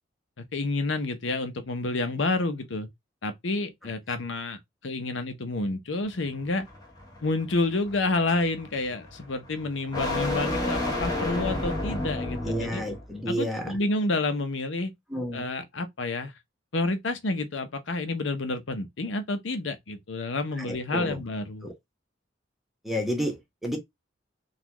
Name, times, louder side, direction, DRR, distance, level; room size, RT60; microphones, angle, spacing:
voice 1, 0.4-2.9 3.2-6.7 7.2-12.8 13.3-14.9 15.3-16.3 16.7-21.7, left 2 dB, 70° left, 0.8 m, -29 dB
sound 1, 6.1-13.1, left 2 dB, 20° left, 1.3 m, -32 dB
voice 2, 12.4-13.8 15.1-15.4 20.7-21.2 21.6-21.7 22.8-23.8, equal, ahead, 1.1 m, -31 dB
3.9 x 2.4 x 3.0 m
head